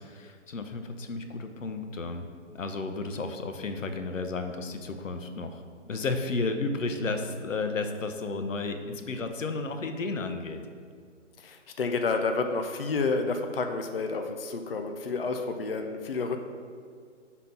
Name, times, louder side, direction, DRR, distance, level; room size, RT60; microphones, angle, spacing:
voice 1, 0.0-2.3 2.5-10.7, left 3 dB, 90° left, 7 dB, 0.8 m, -33 dB
voice 2, 11.4-16.4, left 4 dB, 50° left, 5 dB, 0.5 m, -30 dB
5.4 x 4.1 x 5.6 m, 2.1 s
hypercardioid pair, 170°, 37 cm